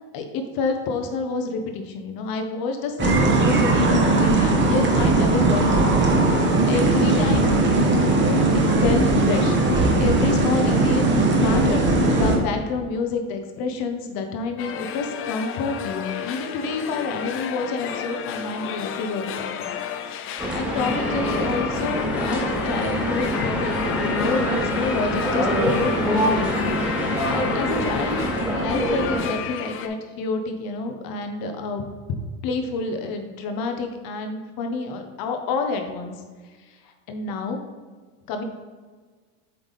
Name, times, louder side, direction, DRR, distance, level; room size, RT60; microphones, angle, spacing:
voice 1, 0.1-7.6 8.1-19.7 20.1-26.7 27.3-28.2 28.5-31.8 32.4-36.1 37.1-37.6 38.3-38.4, left 3 dB, 50° left, 5 dB, 1.1 m, -28 dB
sound 1, 3.0-12.4, right 2 dB, 25° right, 1.1 m, -19 dB
sound 2, 14.6-29.9, left 8 dB, 30° left, 0.4 m, -32 dB
sound 3, 20.4-29.3, equal, ahead, 1.7 m, -25 dB
8.0 x 3.4 x 4.1 m, 1.4 s
supercardioid pair, 115°, 45 cm